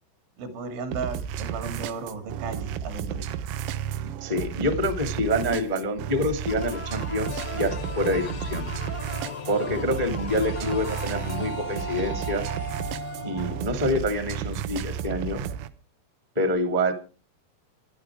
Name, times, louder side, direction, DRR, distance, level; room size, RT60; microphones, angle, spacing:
voice 1, 0.4-3.3, right 4 dB, 75° right, 8 dB, 4.8 m, -35 dB
sound 1, 0.9-15.7, right 9 dB, 90° right, 3.5 m, -33 dB
voice 2, 4.0-8.7 9.5-12.5 13.2-15.5 16.3-16.9, left 1 dB, 25° right, 8 dB, 0.8 m, -27 dB
sound 2, 6.5-14.0, right 2 dB, 25° left, 0.6 m, -38 dB
sound 3, 7.3-14.3, left 7 dB, 80° left, 1.5 m, -40 dB
19.5 x 11.5 x 4.8 m, 0.36 s
omnidirectional pair, 5.6 m